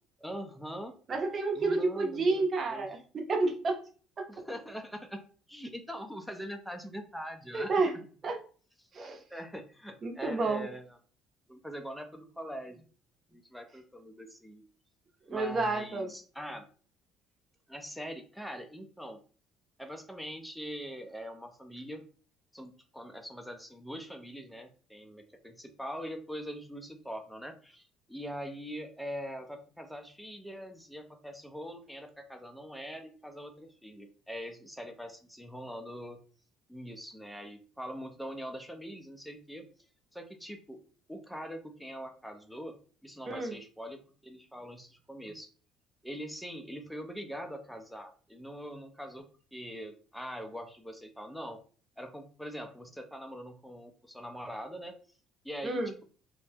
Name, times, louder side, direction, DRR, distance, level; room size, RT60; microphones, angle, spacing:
voice 1, 0.2-0.9 1.5-2.9 4.3-5.2 5.5-7.7 9.3-11.0 11.5-12.9 13.3-14.6 15.3-16.6 17.7-19.2 19.8-22.0 22.5-36.2 36.7-39.6 40.1-40.8 41.1-42.8 43.0-45.5 46.0-51.6 52.0-54.9 55.4-56.0, equal, ahead, 5 dB, 0.5 m, -43 dB
voice 2, 1.1-3.8 4.2-4.3 7.5-7.9 8.2-8.4 8.9-9.2 10.0-10.7 15.3-16.1 43.3-43.5 55.6-55.9, right 3 dB, 35° right, 3 dB, 0.7 m, -30 dB
2.7 x 2.1 x 3.3 m, 0.40 s
cardioid pair, 100°, 0 cm